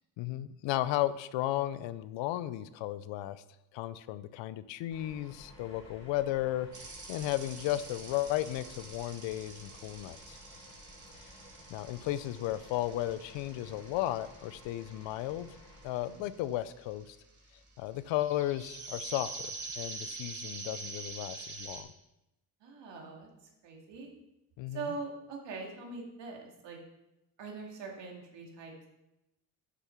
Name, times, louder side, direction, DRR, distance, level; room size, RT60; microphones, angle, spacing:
voice 1, 0.2-3.4 3.7-10.4 11.7-15.5 15.8-17.2 17.8-19.5 19.8-21.9 24.6-24.8, left 14 dB, 80° left, 16 dB, 0.6 m, -34 dB
sound 1, 4.9-16.5, left 1 dB, 15° left, 2.9 m, -55 dB
sound 2, 6.7-21.8, right 3 dB, 40° right, 2.1 m, -46 dB
voice 2, 22.6-24.1 24.7-26.8 27.4-28.7, right 4 dB, 75° right, 1 dB, 2.3 m, -42 dB
7.6 x 6.6 x 5.8 m, 0.92 s
supercardioid pair, 75°, 44 cm